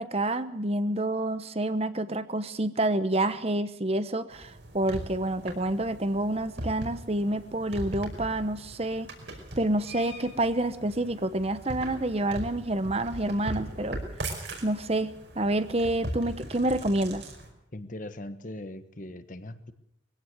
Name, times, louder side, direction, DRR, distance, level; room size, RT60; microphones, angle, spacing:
voice 1, 0.0-9.1 9.6-14.0 14.6-17.2, right 1 dB, 30° right, 12 dB, 0.9 m, -28 dB
sound 1, 4.3-17.5, right 1 dB, 65° right, 5.2 m, -40 dB
voice 2, 17.7-19.7, left 1 dB, 40° left, 11 dB, 1.3 m, -40 dB
22.0 x 16.5 x 7.9 m, 0.72 s
head